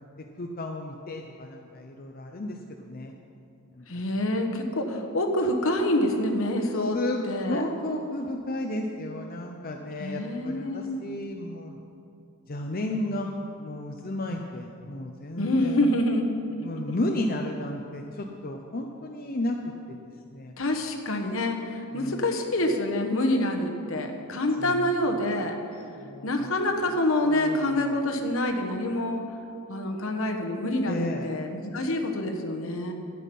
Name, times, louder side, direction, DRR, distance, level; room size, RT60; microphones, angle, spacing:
voice 1, 0.4-3.1 3.7-3.9 6.7-11.8 12.5-13.3 13.6-15.9 16.6-19.6 19.9-20.0 20.3-20.5 21.9-22.3 24.6-24.9 25.7-27.0 27.2-28.0 30.9-31.3, left 1 dB, 40° left, 2 dB, 0.6 m, -33 dB
voice 2, 3.9-7.0 7.3-7.6 10.0-11.0 15.4-16.3 20.6-25.6 26.2-29.2 29.7-32.9, left 1 dB, 65° left, 3 dB, 1.2 m, -26 dB
12.5 x 9.3 x 5.4 m, 2.6 s
head